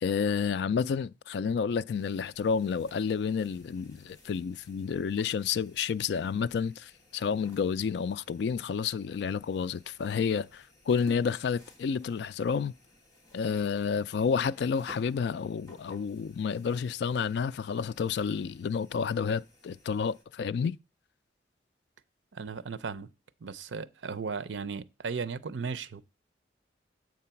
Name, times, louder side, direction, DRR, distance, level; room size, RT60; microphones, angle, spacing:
voice 1, 0.0-12.7 13.3-20.8, left 6 dB, 65° left, 0.3 m, -30 dB
sound 1, 1.9-20.2, equal, 20° left, 1.6 m, -58 dB
voice 2, 22.3-23.1 23.4-26.0, right 5 dB, 85° right, 0.6 m, -36 dB
7.5 x 3.9 x 5.7 m
head